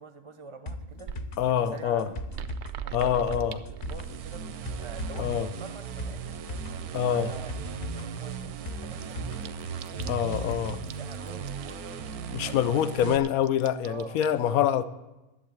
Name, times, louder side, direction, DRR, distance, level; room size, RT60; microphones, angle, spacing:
voice 1, 0.0-2.2 2.8-4.5 4.8-6.4 7.1-9.5 10.0-11.9 12.4-12.9 13.8-14.6, right 4 dB, 30° right, 0.6 m, -46 dB
sound 1, 0.7-10.7 11.0-11.1, left 1 dB, 45° left, 0.5 m, -39 dB
sound 2, 0.9-6.1 6.4-7.1 7.3-7.4 7.7-7.8 8.0-14.3, right 8 dB, 60° right, 0.7 m, -43 dB
voice 2, 1.4-2.1 2.9-3.6 5.2-5.5 6.9-7.3 10.1-10.8 12.3-14.8, left 10 dB, 70° left, 1.1 m, -25 dB
sound 3, 3.8-13.2, right 7 dB, 80° right, 1.2 m, -37 dB
11.5 x 8.0 x 8.8 m
omnidirectional pair, 1.6 m